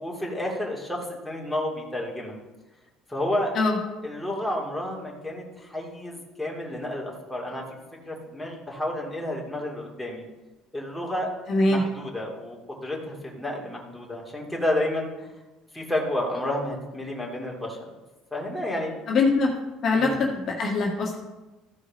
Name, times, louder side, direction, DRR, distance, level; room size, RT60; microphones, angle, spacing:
voice 1, 0.0-2.4 3.1-3.5 4.0-7.8 8.1-10.2 10.7-11.3 11.7-15.1 15.7-17.8 18.3-18.9 19.9-20.2, left 1 dB, ahead, -3 dB, 2.5 m, -30 dB
voice 2, 11.5-11.8 19.1-19.5 19.8-21.2, left 3 dB, 45° left, -1 dB, 1.8 m, -22 dB
14.0 x 5.0 x 5.2 m, 1.1 s
cardioid pair, 110°, 0 cm